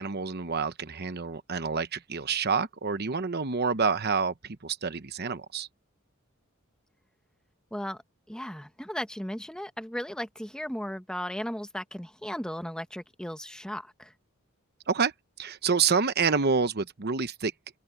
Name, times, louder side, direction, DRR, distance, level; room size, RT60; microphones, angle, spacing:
voice 1, 0.0-5.7 14.9-15.1 15.4-17.5, right 5 dB, 50° right, 1.0 m, -28 dB
voice 2, 7.7-8.0 8.3-14.1, equal, 5° left, 1.4 m, -36 dB
open air
head